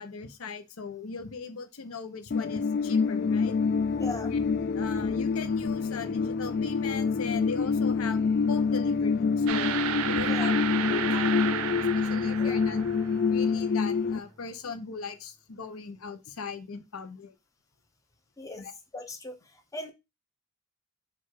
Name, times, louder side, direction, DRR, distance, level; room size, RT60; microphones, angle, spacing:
voice 1, 0.0-3.5 4.3-9.7 10.1-11.3 11.9-12.8 13.3-17.3 18.6-18.7, left 4 dB, 85° left, 0.7 m, -39 dB
sound 1, 2.3-14.2, left 5 dB, 50° left, 0.3 m, -26 dB
sound 2, 3.2-14.8, equal, 20° right, 0.6 m, -45 dB
voice 2, 4.0-4.3 10.2-10.5 12.4-12.6 18.4-18.6 18.9-19.3 19.7-19.9, left 2 dB, 15° left, 0.7 m, -38 dB
sound 3, 9.5-13.4, right 9 dB, 85° right, 0.4 m, -32 dB
4.7 x 2.4 x 4.5 m
head